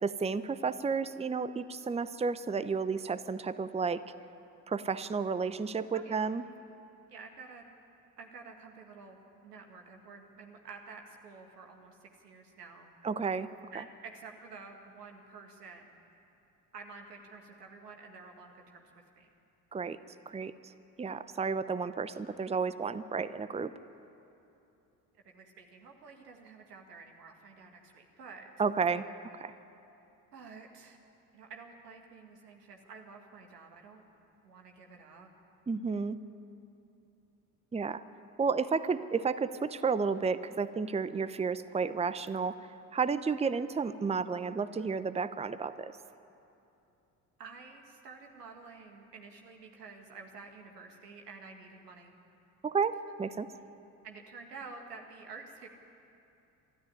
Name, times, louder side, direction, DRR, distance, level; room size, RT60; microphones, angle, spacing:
voice 1, 0.0-4.0 4.7-6.4 13.0-13.5 19.7-20.0 20.3-20.7 21.0-23.7 28.6-29.1 29.3-29.5 35.7-36.2 37.7-38.0 38.4-42.5 42.9-45.9 52.6-53.5, right 5 dB, 15° right, 14 dB, 0.8 m, -32 dB
voice 2, 5.9-6.2 7.1-7.6 8.2-9.2 9.4-12.9 13.7-15.9 16.7-19.3 25.2-28.5 30.3-31.0 31.3-34.0 34.4-35.3 47.4-52.1 54.0-55.7, right 4 dB, 90° right, 3 dB, 2.0 m, -50 dB
24.5 x 13.0 x 9.7 m, 2.8 s
hypercardioid pair, 60°, 47 cm